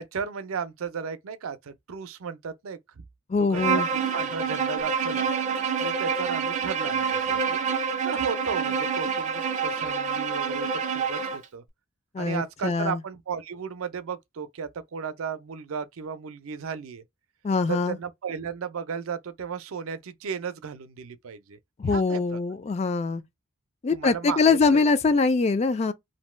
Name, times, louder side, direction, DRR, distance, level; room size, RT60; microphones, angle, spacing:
voice 1, 0.0-3.0 3.4-5.3 5.8-7.6 8.0-11.6 12.2-17.0 17.7-21.6 21.9-22.4 23.9-24.9, right 6 dB, 90° right, 0.5 m, -35 dB
voice 2, 3.3-3.9 12.1-13.0 17.4-18.0 21.8-23.2 23.8-25.9, left 4 dB, 30° left, 0.3 m, -23 dB
Bowed string instrument, 3.5-11.4, right 6 dB, 35° right, 0.5 m, -27 dB
2.6 x 2.1 x 3.1 m
head